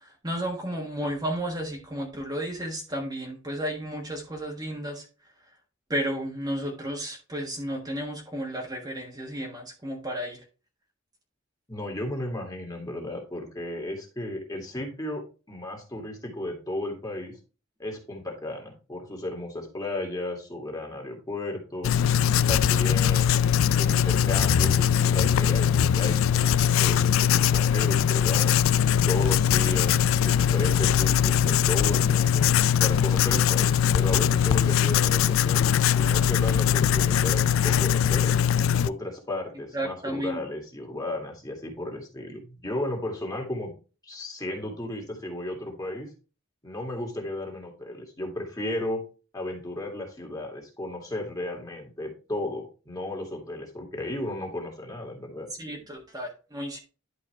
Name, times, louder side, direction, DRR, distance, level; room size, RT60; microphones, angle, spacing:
voice 1, 0.0-5.0 5.9-10.4 39.7-40.4 55.6-56.8, equal, 20° right, 0 dB, 1.5 m, -33 dB
voice 2, 11.7-15.2 15.5-17.4 17.8-21.9 22.5-23.5 23.8-28.6 29.1-32.5 32.8-38.3 38.8-43.7 44.0-46.1 46.6-49.0 49.3-55.5, left 1 dB, 20° left, 0 dB, 2.2 m, -34 dB
Writing, 21.8-38.9, left 8 dB, 75° left, 0.3 m, -21 dB
11.0 x 4.7 x 3.3 m, 0.33 s
head